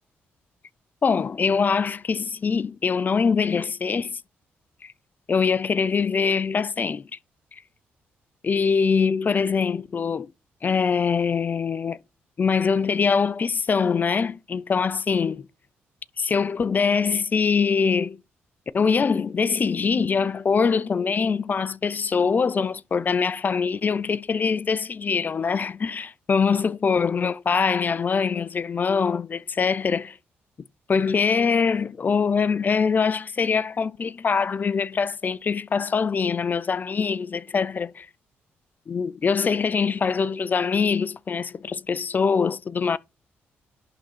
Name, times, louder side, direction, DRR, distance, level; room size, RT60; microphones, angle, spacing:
voice 1, 1.0-4.2 4.8-4.9 5.3-7.1 8.4-10.3 10.6-12.0 12.4-15.5 16.2-18.2 18.7-30.2 30.9-38.1 38.9-43.0, left 5 dB, 40° left, 0.5 m, -23 dB
11.0 x 3.8 x 4.4 m
cardioid pair, 80°, 5 cm